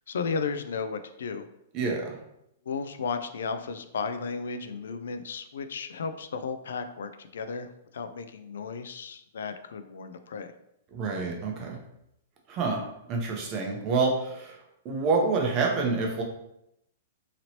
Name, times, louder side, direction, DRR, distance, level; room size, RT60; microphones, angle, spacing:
voice 1, 0.1-1.5 2.7-10.5, left 5 dB, 85° left, 9 dB, 0.3 m, -34 dB
voice 2, 1.7-2.2 10.9-11.8 12.5-12.8 13.1-14.6 14.8-16.2, right 4 dB, 30° right, 1 dB, 0.7 m, -27 dB
3.0 x 2.8 x 2.8 m, 0.80 s
hypercardioid pair, 145°, 0 cm